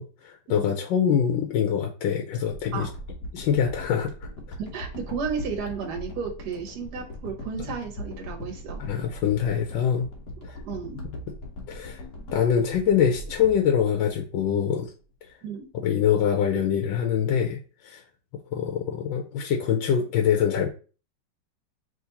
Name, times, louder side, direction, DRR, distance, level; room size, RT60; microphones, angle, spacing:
voice 1, 0.0-2.9 3.3-4.1 8.8-10.1 10.4-10.5 11.7-12.0 12.3-14.9 15.7-18.0 18.5-20.7, left 8 dB, 85° left, 2 dB, 1.3 m, -24 dB
sound 1, 2.5-14.7 15.2-15.3, left 1 dB, 55° left, 1.5 m, -40 dB
voice 2, 4.6-8.8 10.6-11.1 15.4-15.7, right 6 dB, 60° right, 1 dB, 1.5 m, -33 dB
3.8 x 3.1 x 4.0 m, 0.36 s
omnidirectional pair, 2.0 m